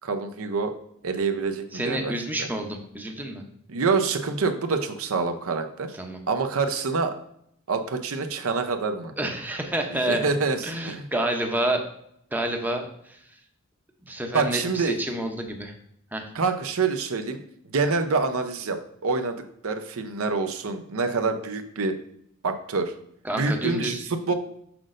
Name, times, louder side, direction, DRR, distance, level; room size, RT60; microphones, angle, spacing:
voice 1, 0.0-0.8 1.0-2.1 3.7-5.9 6.3-7.1 7.7-9.1 10.1-11.0 14.3-14.9 16.3-17.4 17.7-22.0 22.4-22.9 23.3-24.3, right 4 dB, 65° right, 7 dB, 0.6 m, -26 dB
voice 2, 1.7-3.4 5.9-6.2 9.2-10.3 10.6-11.8 12.3-13.2 14.0-15.7 16.1-16.3 23.2-24.0, right 1 dB, 10° right, 3 dB, 0.6 m, -29 dB
6.3 x 5.9 x 2.5 m, 0.72 s
head